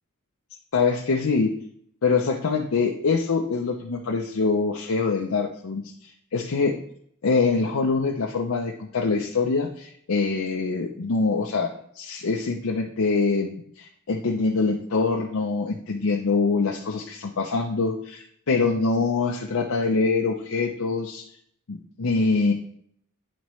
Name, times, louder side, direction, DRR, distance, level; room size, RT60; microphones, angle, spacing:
voice 1, 0.7-1.5 2.0-6.8 7.2-21.2 21.7-22.5, left 4 dB, 70° left, 2 dB, 0.6 m, -24 dB
10.5 x 4.2 x 3.1 m, 0.68 s
head